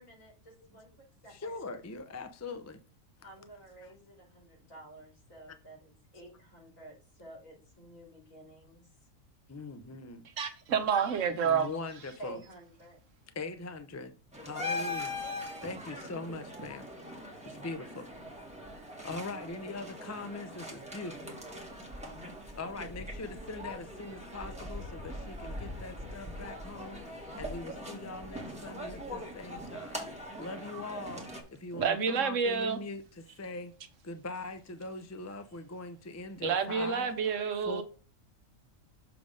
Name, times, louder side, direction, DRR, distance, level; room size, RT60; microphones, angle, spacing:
voice 1, 0.0-1.6 3.2-8.9 12.2-13.0 15.5-15.8, right 2 dB, 75° left, 3.6 m, -52 dB
voice 2, 1.3-2.8 3.8-3.9 9.5-10.2 11.4-12.4 13.3-14.1 14.4-15.2 15.6-16.9 17.4-18.1 19.0-21.3 22.5-30.0 30.4-33.7 34.0-37.1 37.7-37.8, left 3 dB, 25° left, 0.3 m, -42 dB
voice 3, 10.4-11.7 31.7-32.8 36.4-37.8, right 6 dB, 70° right, 1.2 m, -29 dB
sound 1, 14.3-31.4, left 1 dB, 5° right, 1.5 m, -41 dB
6.9 x 3.4 x 5.2 m
omnidirectional pair, 1.4 m